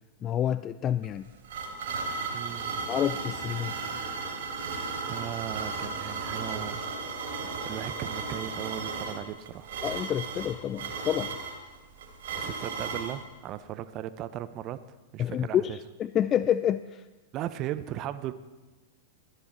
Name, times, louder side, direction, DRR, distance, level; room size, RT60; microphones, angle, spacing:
voice 1, 0.2-1.3 2.9-3.7 9.8-11.4 15.2-17.0, left 10 dB, 30° left, 14 dB, 0.3 m, -28 dB
sound 1, 1.0-13.2, right 4 dB, 65° right, 2.9 m, -35 dB
voice 2, 2.3-2.8 5.1-6.9 7.6-9.7 12.3-14.8 15.1-15.8 17.3-18.3, right 12 dB, 40° right, 13 dB, 0.7 m, -37 dB
14.5 x 10.0 x 4.4 m, 1.2 s
hypercardioid pair, 105°, 0 cm